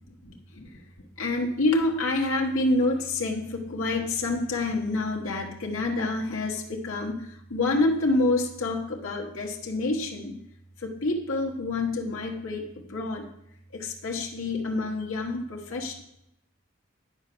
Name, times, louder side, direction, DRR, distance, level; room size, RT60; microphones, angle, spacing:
voice 1, 0.2-0.8 1.2-10.4 10.8-12.6 12.9-13.3 13.7-16.0, left 2 dB, 80° left, 0 dB, 1.3 m, -27 dB
10.5 x 5.1 x 6.9 m, 0.79 s
head